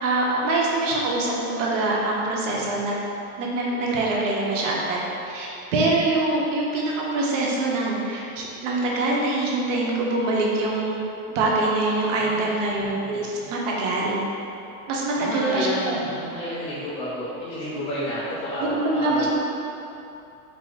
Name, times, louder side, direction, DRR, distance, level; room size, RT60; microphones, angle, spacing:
voice 1, 0.0-3.0 3.4-11.0 11.3-14.2 14.9-16.0 18.6-19.3, right 2 dB, 60° right, -3 dB, 0.9 m, -24 dB
voice 2, 2.4-2.8 12.1-13.5 15.1-19.3, left 1 dB, 15° left, -11 dB, 0.7 m, -31 dB
4.8 x 2.1 x 3.9 m, 2.8 s
supercardioid pair, 170°, 43 cm